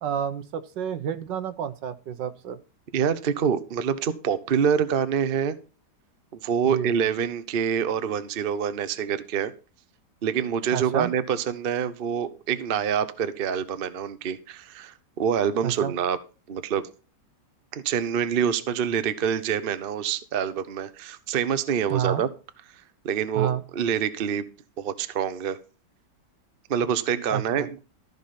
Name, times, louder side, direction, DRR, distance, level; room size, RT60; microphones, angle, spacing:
voice 1, 0.0-2.6 6.7-6.9 10.7-11.1 15.6-15.9 21.9-22.2 23.4-23.6 27.3-27.7, right 9 dB, 75° right, 12 dB, 1.6 m, -29 dB
voice 2, 2.9-5.6 6.3-9.5 10.2-16.2 16.5-16.9 17.7-22.3 23.0-24.4 24.8-25.6 26.7-27.8, right 8 dB, 45° right, 12 dB, 0.7 m, -26 dB
14.0 x 5.4 x 5.7 m, 0.34 s
omnidirectional pair, 2.0 m